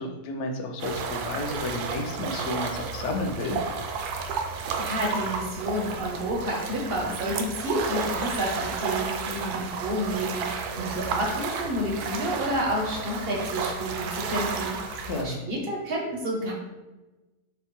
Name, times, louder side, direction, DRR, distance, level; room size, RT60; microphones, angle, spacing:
voice 1, 0.0-3.6 14.9-15.4, left 2 dB, 65° left, 4 dB, 0.8 m, -32 dB
sound 1, 0.8-15.2, right 5 dB, 75° right, 1.1 m, -32 dB
voice 2, 4.3-16.5, equal, 50° right, -1 dB, 0.7 m, -30 dB
6.3 x 2.2 x 3.0 m, 1.1 s
omnidirectional pair, 1.7 m